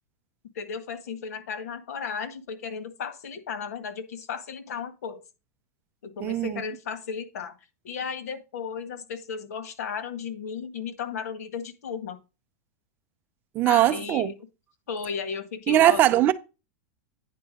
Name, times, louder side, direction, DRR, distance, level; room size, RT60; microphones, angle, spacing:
voice 1, 0.5-5.2 6.0-7.5 7.8-12.2 13.6-14.3 14.9-16.0, left 6 dB, 85° left, 1.7 m, -34 dB
voice 2, 6.2-6.6 13.5-14.3 15.7-16.3, right 13 dB, 25° right, 0.5 m, -20 dB
9.4 x 4.6 x 5.1 m
supercardioid pair, 170°, 8 cm